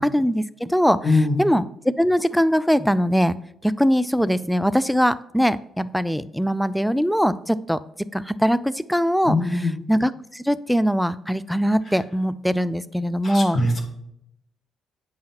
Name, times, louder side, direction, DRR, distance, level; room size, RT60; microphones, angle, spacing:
voice 1, 0.0-3.3 3.6-7.8 8.1-13.6, equal, ahead, 17 dB, 0.3 m, -22 dB
voice 2, 1.0-1.4 9.2-9.7 13.2-13.8, left 2 dB, 45° left, 2 dB, 1.6 m, -21 dB
8.7 x 5.6 x 2.9 m, 0.75 s
cardioid pair, 90°, 0 cm